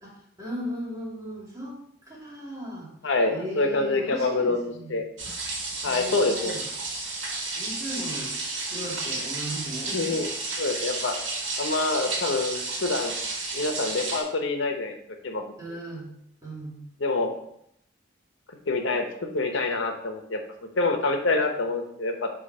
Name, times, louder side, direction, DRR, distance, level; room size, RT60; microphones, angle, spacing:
voice 1, 0.0-2.9 3.3-5.0 5.8-6.6 7.6-8.3 8.6-10.2 15.6-16.1 16.4-16.8, equal, 20° right, -4 dB, 1.8 m, -37 dB
voice 2, 3.0-5.0 5.8-6.6 9.9-10.3 10.6-11.2 11.6-13.1 13.5-15.0 15.2-15.5 17.0-17.3 18.7-20.4 20.8-22.3, left 3 dB, 85° left, 5 dB, 0.9 m, -26 dB
sound 1, 5.2-14.2, right 3 dB, 85° right, 1.5 m, -32 dB
6.9 x 2.8 x 5.4 m, 0.72 s
head